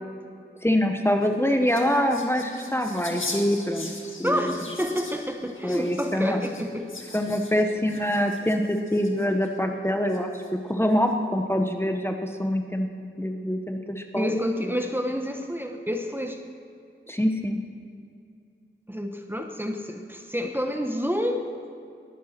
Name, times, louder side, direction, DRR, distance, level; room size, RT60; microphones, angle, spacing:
voice 1, 0.6-3.9 4.2-4.6 5.6-6.4 7.1-12.9 13.2-14.4 17.1-17.6, equal, 10° left, 4 dB, 1.1 m, -25 dB
sound 1, 1.1-9.5 10.1-10.7, left 2 dB, 80° left, 1.8 m, -41 dB
voice 2, 4.2-6.9 14.2-16.4 18.9-21.4, equal, 10° right, 4 dB, 1.1 m, -29 dB
21.0 x 9.4 x 5.9 m, 2.4 s
wide cardioid pair, 65°, 20 cm